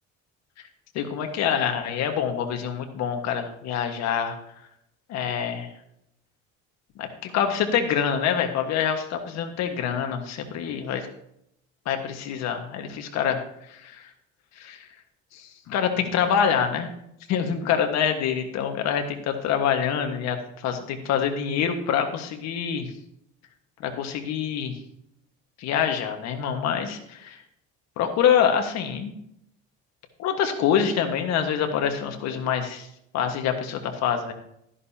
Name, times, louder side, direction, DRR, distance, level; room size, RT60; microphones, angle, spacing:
voice 1, 0.9-4.4 5.1-5.7 7.0-11.0 11.8-13.4 13.7-14.0 14.6-14.8 15.3-16.9 17.3-20.4 20.6-22.9 23.8-24.8 25.6-27.4 28.0-29.1 30.2-32.9 33.1-34.3, left 8 dB, 65° left, 5 dB, 1.6 m, -25 dB
13.0 x 11.0 x 2.8 m, 0.76 s
cardioid pair, 155°, 29 cm